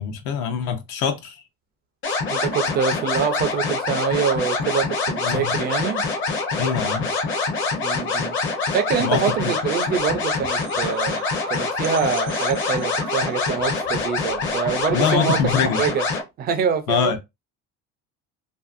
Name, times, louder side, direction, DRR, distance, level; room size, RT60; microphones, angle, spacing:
voice 1, 0.0-1.4 5.2-5.5 6.6-7.1 9.0-9.2 14.9-15.8 16.9-17.2, left 7 dB, 75° left, 0.7 m, -23 dB
sound 1, 2.0-16.2, left 4 dB, 40° left, 0.7 m, -25 dB
voice 2, 2.3-6.0 7.8-8.4 8.7-11.2 11.5-16.0 16.4-17.2, right 7 dB, 30° right, 0.4 m, -25 dB
sound 2, 9.8-15.7, right 7 dB, 85° right, 0.8 m, -41 dB
2.6 x 2.5 x 2.4 m
cardioid pair, 170°, 31 cm